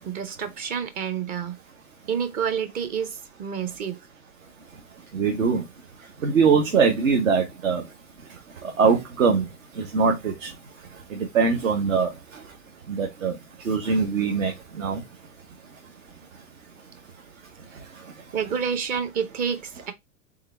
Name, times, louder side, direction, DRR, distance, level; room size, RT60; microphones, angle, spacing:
voice 1, 0.0-1.6 2.1-4.0 18.3-19.9, right 7 dB, 20° right, 0.5 m, -29 dB
voice 2, 5.1-5.6 6.2-7.8 8.6-9.5 9.8-10.5 11.1-12.1 12.9-13.4 13.6-15.0, right 5 dB, 65° right, 1.0 m, -22 dB
3.7 x 3.5 x 3.2 m
figure-of-eight pair, 90°, 42 cm